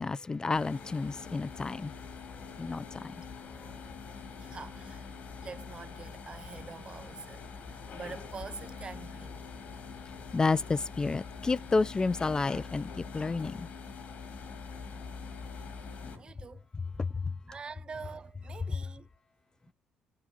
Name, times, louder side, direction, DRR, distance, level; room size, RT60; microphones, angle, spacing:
voice 1, 0.0-1.9 2.3-3.2 3.6-3.7 10.3-13.7 16.0-16.2 17.0-17.4 18.7-18.8, left 3 dB, 25° left, 0.5 m, -31 dB
sound 1, 0.5-16.2, left 5 dB, 60° left, 2.6 m, -44 dB
voice 2, 4.4-5.0 5.4-9.5 16.1-16.7 17.5-19.1, right 5 dB, 35° right, 0.4 m, -45 dB
17.0 x 7.4 x 2.5 m
supercardioid pair, 60°, 3 cm